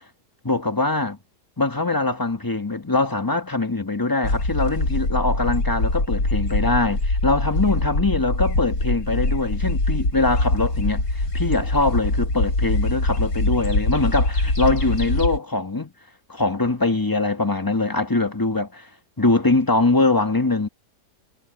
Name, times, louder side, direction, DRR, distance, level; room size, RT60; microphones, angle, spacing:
voice 1, 0.4-1.2 1.6-15.9 16.3-18.9 19.2-20.7, left 2 dB, 15° left, 1.2 m, -22 dB
sound 1, 4.2-15.4, left 2 dB, 85° left, 7.4 m, -23 dB
omnidirectional pair, 1.8 m